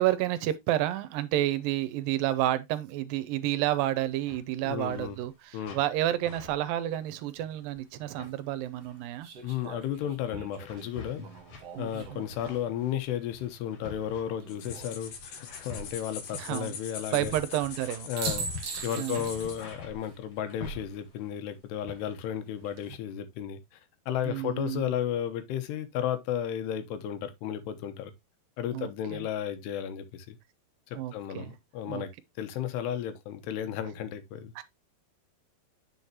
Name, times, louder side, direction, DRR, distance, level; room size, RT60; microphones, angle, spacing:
voice 1, 0.0-9.3 11.8-12.2 16.3-16.8 17.1-18.1 19.0-19.2 24.3-24.9 28.7-29.3 30.9-31.5 31.9-32.0 34.6-34.7, right 13 dB, 80° right, 2.1 m, -30 dB
sound 1, 4.0-4.4 4.7-5.4 5.6-6.0 6.2-7.6 8.0-8.3 8.8-9.1 9.7-21.3 21.9-22.3 22.6-22.9, left 3 dB, 45° left, 2.7 m, -45 dB
voice 2, 4.6-5.2 5.5-5.8 9.4-11.2 11.8-17.3 18.1-23.6 24.1-28.1 28.6-30.4 30.9-32.1 32.4-34.5, left 10 dB, 80° left, 3.0 m, -33 dB
Six Spent Revolver Cartridges, 7.8-7.9 9.2-12.5 14.3-14.9 17.7-17.8 18.2-19.7 20.0-20.1 22.5-23.0, right 6 dB, 60° right, 1.8 m, -41 dB
sound 2, 14.5-19.7, left 6 dB, 65° left, 2.8 m, -43 dB
7.9 x 6.3 x 2.8 m
omnidirectional pair, 4.7 m